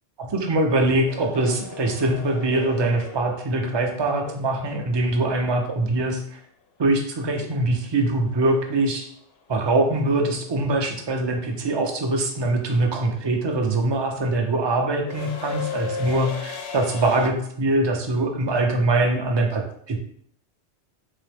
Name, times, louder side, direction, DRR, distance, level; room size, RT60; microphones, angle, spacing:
voice 1, 0.2-6.4 6.8-9.1 9.5-20.0, right 2 dB, 40° right, 3 dB, 0.4 m, -23 dB
sound 1, 1.1-5.1 7.5-7.6 8.9-9.2 9.5-17.3, left 5 dB, 70° left, 0.8 m, -37 dB
3.7 x 3.0 x 3.3 m, 0.66 s
omnidirectional pair, 1.1 m